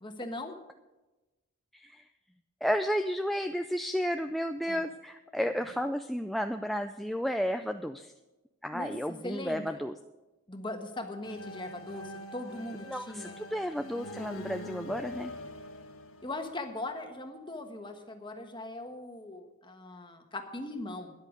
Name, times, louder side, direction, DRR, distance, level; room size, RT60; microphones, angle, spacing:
voice 1, 0.0-0.6 4.7-4.8 8.7-9.0 9.2-9.8 10.5-13.4 16.2-21.1, left 2 dB, 20° left, 5 dB, 1.3 m, -40 dB
voice 2, 1.7-2.0 2.6-8.1 8.6-9.9 12.9-15.3, equal, ahead, 6 dB, 0.3 m, -32 dB
sound 1, 11.2-17.0, left 1 dB, 75° left, 1.5 m, -44 dB
13.0 x 10.5 x 5.2 m, 1.1 s
head